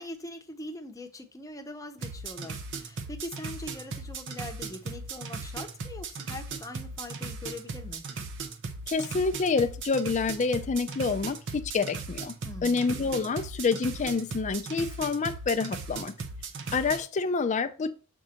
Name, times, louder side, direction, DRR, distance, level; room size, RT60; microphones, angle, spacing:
voice 1, 0.0-8.0 12.4-12.8, left 1 dB, 15° left, 0.7 m, -42 dB
sound 1, 2.0-17.0, right 4 dB, 55° right, 0.7 m, -38 dB
voice 2, 8.9-12.3 12.6-16.1 16.7-17.9, left 4 dB, 35° left, 0.4 m, -28 dB
6.2 x 3.8 x 4.3 m
head